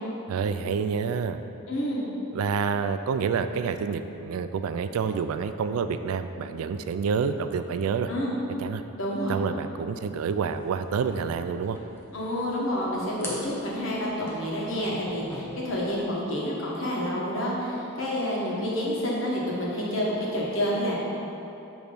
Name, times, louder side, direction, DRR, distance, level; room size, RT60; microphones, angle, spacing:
voice 1, 0.3-1.4 2.3-8.1 8.6-8.8 9.3-11.8, right 6 dB, 85° right, 10 dB, 0.3 m, -28 dB
voice 2, 1.7-2.0 8.1-8.3 9.0-9.4 12.1-21.0, equal, 70° left, -5 dB, 1.2 m, -29 dB
sound 1, 10.5-16.1, left 1 dB, 10° left, 0.6 m, -44 dB
6.6 x 3.0 x 5.2 m, 2.9 s
head